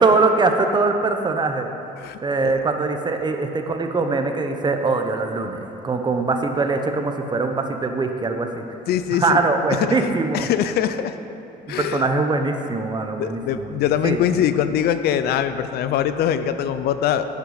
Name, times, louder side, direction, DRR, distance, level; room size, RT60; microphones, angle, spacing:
voice 1, 0.0-1.7 2.2-8.6 9.1-10.5 11.7-13.7 14.0-14.2, right 3 dB, 25° right, 6 dB, 0.8 m, -22 dB
voice 2, 2.0-2.5 3.3-3.4 8.9-11.2 11.7-12.1 13.2-17.3, left 9 dB, 70° left, 11 dB, 0.5 m, -23 dB
9.9 x 6.7 x 4.9 m, 2.9 s
cardioid pair, 110°, 17 cm